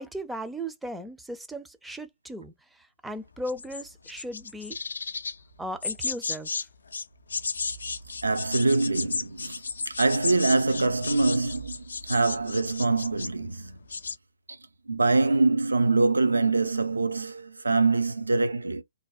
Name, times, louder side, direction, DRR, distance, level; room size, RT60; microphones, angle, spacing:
voice 1, 0.0-4.8 5.6-6.6, right 1 dB, 5° right, 0.4 m, -37 dB
sound 1, 3.5-5.4 5.8-6.7 6.9-13.4 13.7-14.2, left 4 dB, 70° left, 0.3 m, -33 dB
voice 2, 8.2-13.8 14.5-14.6 14.9-18.8, right 3 dB, 80° right, 0.5 m, -24 dB
2.6 x 2.1 x 2.3 m
figure-of-eight pair, 125°, 0 cm